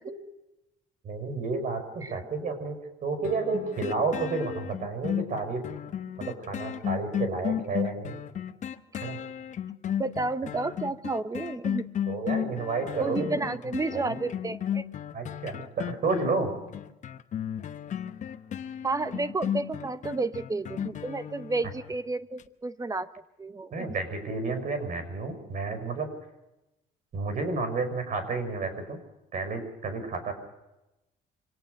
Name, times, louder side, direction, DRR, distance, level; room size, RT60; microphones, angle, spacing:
voice 1, 1.0-2.8 3.0-5.6 6.2-8.2 9.0-9.2 12.1-13.3 13.9-14.2 15.1-16.5 23.7-26.1 27.1-29.0 29.3-30.3, right 3 dB, 50° right, 9 dB, 6.1 m, -31 dB
sound 1, 3.2-21.9 22.4-22.5, left 9 dB, 45° left, 1.0 m, -34 dB
voice 2, 10.0-11.9 13.0-14.8 18.8-23.1 23.4-23.9, right 3 dB, 20° right, 13 dB, 1.0 m, -31 dB
25.5 x 18.5 x 6.6 m, 0.95 s
cardioid pair, 110°, 17 cm